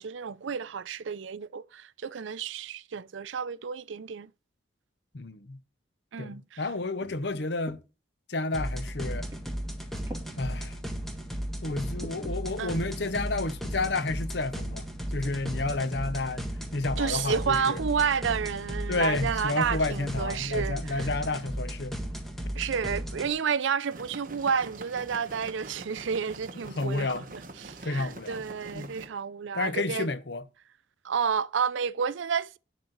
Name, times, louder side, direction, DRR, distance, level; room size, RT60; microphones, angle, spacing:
voice 1, 0.0-4.3 6.1-6.6 12.6-12.8 17.0-21.1 22.6-30.1 31.0-32.6, right 6 dB, 75° right, 0.5 m, -30 dB
voice 2, 5.1-5.6 6.2-7.8 8.3-9.3 10.4-10.8 11.6-17.8 18.9-22.0 26.5-27.3 27.8-28.4 28.7-29.0 29.5-30.5, left 3 dB, 60° left, 0.8 m, -31 dB
sound 1, 7.0-7.8 8.6-8.7 9.3-9.6 9.9-10.3 11.0-11.1 11.7-12.4 13.5-13.6 14.1-14.3 15.2-15.4 15.8-15.9 16.2-16.6, equal, 15° right, 2.8 m, -46 dB
sound 2, 8.5-23.3, equal, ahead, 1.4 m, -35 dB
sound 3, 23.9-29.1, right 2 dB, 45° right, 1.2 m, -45 dB
11.0 x 4.2 x 7.8 m
head